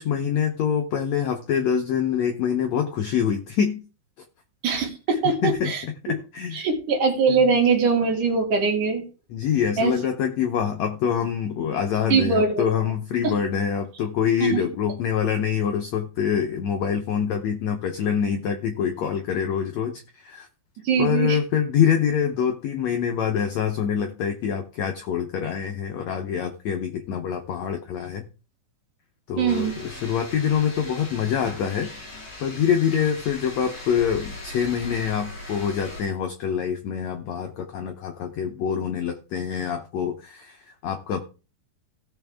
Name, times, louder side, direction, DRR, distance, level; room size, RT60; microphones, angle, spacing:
voice 1, 0.0-3.8 5.4-5.7 6.0-6.7 7.3-7.5 9.3-20.5 21.0-28.2 29.3-31.9 32.4-41.2, left 8 dB, 85° left, 6 dB, 1.5 m, -25 dB
voice 2, 4.6-5.8 6.5-9.0 9.8-9.9 12.1-12.7 13.2-13.3 14.4-14.6 20.8-21.4 29.4-29.8, right 5 dB, 60° right, 1 dB, 3.5 m, -22 dB
sound 1, 29.5-36.0, left 2 dB, 50° left, 5.5 m, -39 dB
16.5 x 6.4 x 3.5 m, 0.33 s
omnidirectional pair, 4.4 m